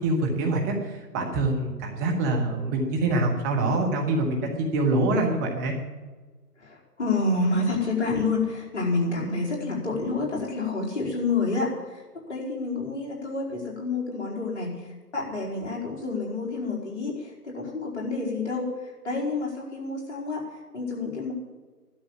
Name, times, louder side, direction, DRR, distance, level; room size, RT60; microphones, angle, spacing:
voice 1, 0.0-5.7, right 2 dB, 10° right, 1 dB, 1.3 m, -25 dB
voice 2, 6.6-12.0 12.3-20.4 20.7-21.3, left 3 dB, 45° left, -3 dB, 4.7 m, -28 dB
13.5 x 12.0 x 7.5 m, 1.3 s
figure-of-eight pair, 150°, 47 cm